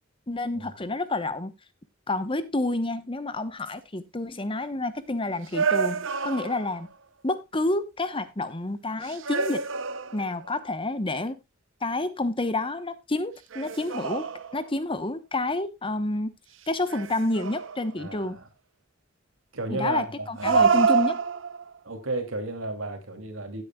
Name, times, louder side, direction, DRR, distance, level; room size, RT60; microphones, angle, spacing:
voice 1, 0.3-1.5 2.1-6.9 7.2-9.6 10.1-11.4 11.8-16.3 16.7-18.4 19.7-21.2, left 2 dB, 25° left, 1.0 m, -29 dB
sound 1, 5.5-6.9 9.0-10.5 13.5-14.8 16.9-18.0 20.4-21.8, right 5 dB, 65° right, 0.8 m, -27 dB
voice 2, 18.0-18.5 19.5-20.7 21.8-23.6, right 2 dB, 90° right, 2.8 m, -33 dB
16.5 x 8.5 x 2.3 m
head